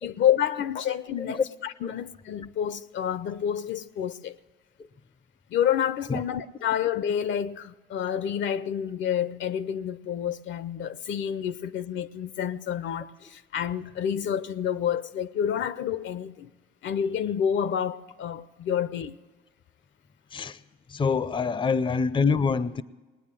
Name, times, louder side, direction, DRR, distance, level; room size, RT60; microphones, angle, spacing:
voice 1, 0.0-4.4 5.5-16.5 16.8-19.2, left 9 dB, 70° left, 0.6 m, -29 dB
voice 2, 20.3-20.6 20.9-22.8, left 5 dB, 25° left, 0.5 m, -26 dB
19.5 x 9.3 x 7.5 m
cardioid pair, 90°, 20 cm